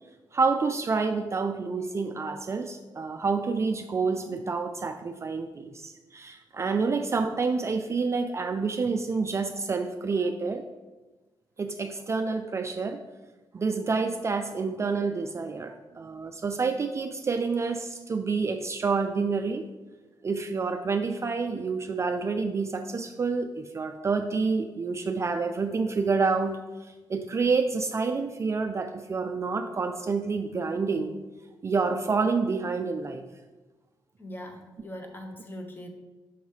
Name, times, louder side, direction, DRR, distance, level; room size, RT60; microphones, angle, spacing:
voice 1, 0.3-10.6 11.6-13.0 13.5-19.6 20.2-26.6 27.1-31.2 31.6-33.2, right 4 dB, 35° right, 7 dB, 0.3 m, -28 dB
voice 2, 34.2-35.9, equal, 25° left, 3 dB, 0.9 m, -41 dB
6.4 x 3.1 x 5.4 m, 1.2 s
cardioid pair, 110°, 9 cm